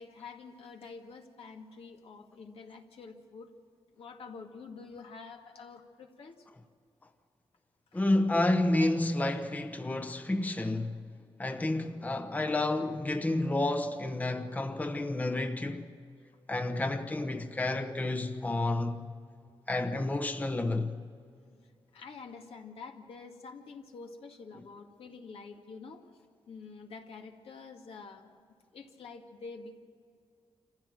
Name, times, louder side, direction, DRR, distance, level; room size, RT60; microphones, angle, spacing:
voice 1, 0.0-3.5 3.9-6.5 7.9-8.0 21.6-26.1 26.5-28.3 28.7-29.8, left 4 dB, 80° left, 2.1 m, -47 dB
voice 2, 7.9-11.0 11.4-15.9 16.5-19.1 19.7-20.9, left 2 dB, 15° left, 0.9 m, -30 dB
27.0 x 15.0 x 7.6 m
wide cardioid pair, 120°, 10 cm